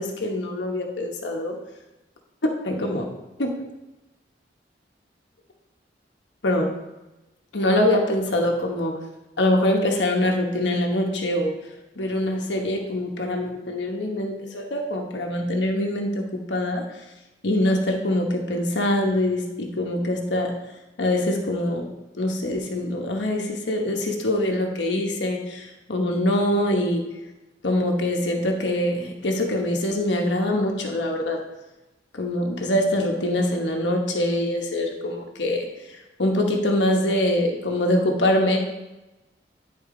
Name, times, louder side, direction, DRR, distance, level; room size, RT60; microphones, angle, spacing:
voice 1, 0.0-1.5 2.4-3.1 3.4-3.5 6.4-6.7 7.5-9.0 9.4-11.6 12.0-16.8 17.4-20.5 21.0-21.9 22.1-27.1 27.6-31.4 32.1-35.7 35.9-38.6, left 1 dB, 85° left, 1 dB, 1.1 m, -24 dB
9.9 x 4.3 x 3.8 m, 1.0 s
head